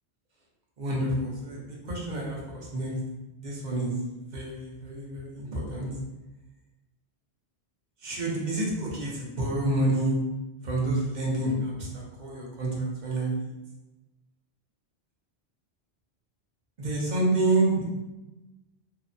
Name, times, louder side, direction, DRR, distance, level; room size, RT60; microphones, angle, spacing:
voice 1, 0.8-2.9 3.4-3.9 4.3-5.9 8.0-10.1 10.6-13.5 16.8-17.8, right 2 dB, 50° right, -3 dB, 0.7 m, -28 dB
2.7 x 2.1 x 2.5 m, 1.0 s
omnidirectional pair, 1.1 m